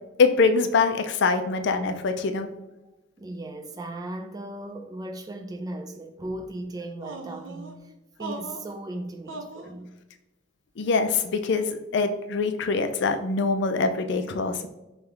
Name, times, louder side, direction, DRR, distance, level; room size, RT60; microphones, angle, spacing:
voice 1, 0.2-2.5 10.8-14.7, left 4 dB, 60° left, 0.4 m, -24 dB
voice 2, 3.2-7.9 8.2-9.9, right 1 dB, 20° right, 0.3 m, -37 dB
sound 1, 7.0-7.7 8.2-8.7 9.3-9.7, right 2 dB, 65° right, 0.5 m, -38 dB
5.3 x 2.3 x 3.2 m
head